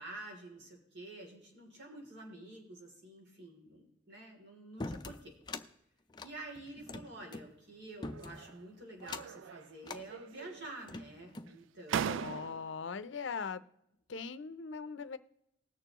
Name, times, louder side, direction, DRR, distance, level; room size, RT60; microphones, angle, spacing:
voice 1, 0.0-5.4 6.2-12.3, right 2 dB, 60° right, 0 dB, 2.9 m, -49 dB
sound 1, 4.8-5.7 6.1-7.5 8.0-8.5 9.0-9.4 9.8-10.1 10.6-11.6, left 3 dB, 20° left, 0.4 m, -43 dB
sound 2, 8.0-8.6 9.0-9.8 10.1-10.8 11.5-11.6 11.9-12.8, right 8 dB, 75° right, 0.3 m, -39 dB
voice 2, 12.1-13.6 14.1-15.2, left 5 dB, 70° left, 13 dB, 0.6 m, -40 dB
20.0 x 6.8 x 3.0 m, 0.83 s
head